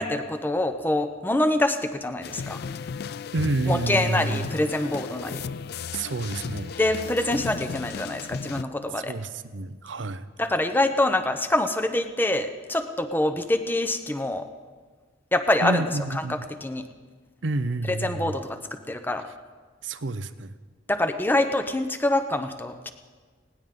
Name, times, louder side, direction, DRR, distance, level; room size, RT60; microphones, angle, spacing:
voice 1, 0.0-2.6 3.7-5.4 6.8-9.2 10.4-14.5 15.3-16.8 17.8-19.3 20.9-22.9, left 1 dB, 10° left, 8 dB, 0.8 m, -25 dB
sound 1, 2.2-8.6, left 5 dB, 55° left, 0.4 m, -35 dB
voice 2, 3.3-4.5 5.9-6.7 9.1-10.3 15.6-16.4 17.4-18.3 19.8-20.5, right 2 dB, 75° right, 13 dB, 0.8 m, -29 dB
19.5 x 18.0 x 3.8 m, 1.5 s
head